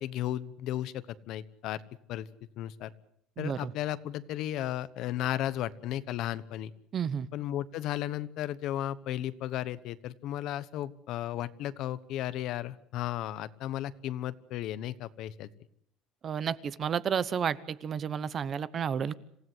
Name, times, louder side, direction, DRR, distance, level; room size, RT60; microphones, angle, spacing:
voice 1, 0.0-1.8 2.1-2.3 2.6-2.9 3.4-6.7 7.3-15.5, left 12 dB, 55° left, 16 dB, 1.1 m, -34 dB
voice 2, 3.4-3.7 6.9-7.3 16.2-19.1, right 7 dB, 30° right, 17 dB, 0.9 m, -31 dB
27.0 x 16.5 x 8.0 m, 0.72 s
cardioid pair, 155°, 0 cm